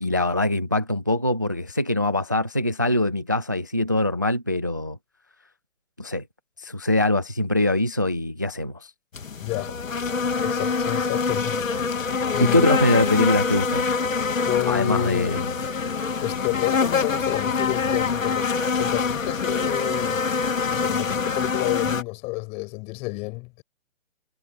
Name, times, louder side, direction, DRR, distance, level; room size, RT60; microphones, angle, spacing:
voice 1, 0.0-5.0 6.0-6.2 6.6-8.9 12.4-13.8 14.7-15.5, left 1 dB, 15° right, 0.5 m, -23 dB
sound 1, 9.1-22.0, left 5 dB, 80° left, 3.1 m, -25 dB
voice 2, 9.4-9.9 10.4-11.6 12.3-12.7 14.4-15.7 16.2-18.5 18.8-20.2 20.7-23.6, left 27 dB, 15° left, 6.3 m, -30 dB
hypercardioid pair, 170°, 39 cm